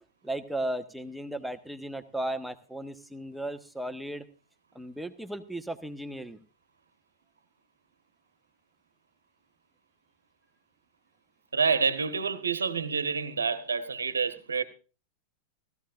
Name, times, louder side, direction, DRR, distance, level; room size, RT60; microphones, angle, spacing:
voice 1, 0.2-4.2 4.7-6.4, right 1 dB, ahead, 1.1 m, -35 dB
voice 2, 11.5-14.6, right 5 dB, 70° right, 1.2 m, -28 dB
17.0 x 14.5 x 2.5 m
figure-of-eight pair, 90°, 0 cm